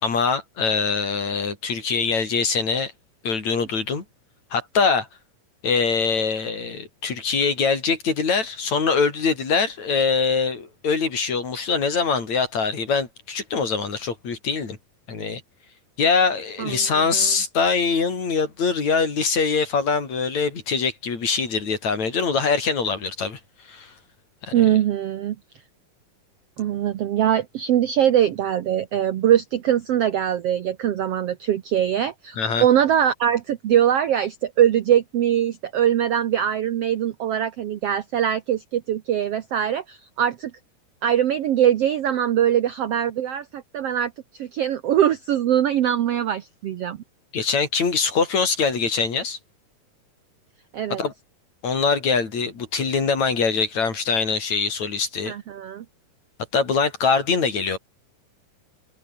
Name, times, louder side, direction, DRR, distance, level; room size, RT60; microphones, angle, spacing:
voice 1, 0.0-2.9 3.2-4.0 4.5-5.1 5.6-14.8 15.1-15.4 16.0-23.4 23.6-23.9 24.4-24.5 32.4-32.6 47.3-49.4 50.9-51.1 51.6-55.3 56.5-57.8, left 5 dB, 55° left, 5.4 m, -23 dB
voice 2, 16.6-17.3 24.5-25.3 26.6-40.5 41.0-47.0 50.7-51.0 55.3-55.8, right 10 dB, 65° right, 1.5 m, -22 dB
omnidirectional pair, 3.9 m